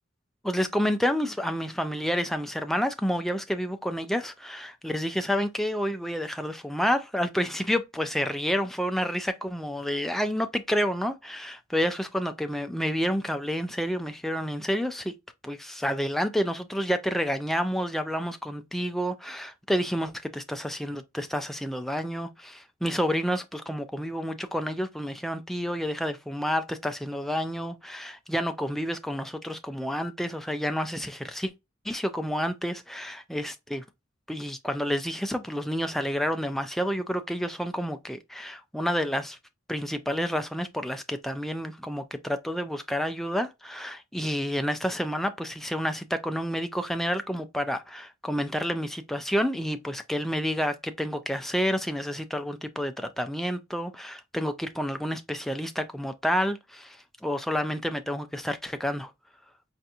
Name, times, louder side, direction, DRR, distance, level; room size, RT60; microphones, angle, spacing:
voice 1, 0.4-15.1 15.4-31.5 31.8-33.8 34.3-39.4 39.7-59.1, equal, ahead, 0.3 m, -29 dB
4.5 x 2.5 x 2.7 m
head